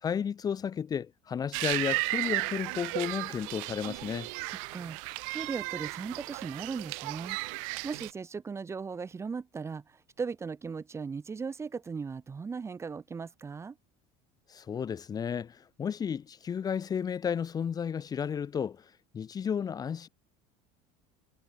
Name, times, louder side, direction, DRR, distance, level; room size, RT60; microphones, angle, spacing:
voice 1, 0.0-4.3 14.5-20.1, left 7 dB, 20° left, 2.2 m, -33 dB
sound 1, 1.5-8.1, right 32 dB, 85° right, 2.1 m, -35 dB
voice 2, 4.5-7.4 7.8-13.8, right 5 dB, 15° right, 3.0 m, -38 dB
cardioid pair, 170°, 17 cm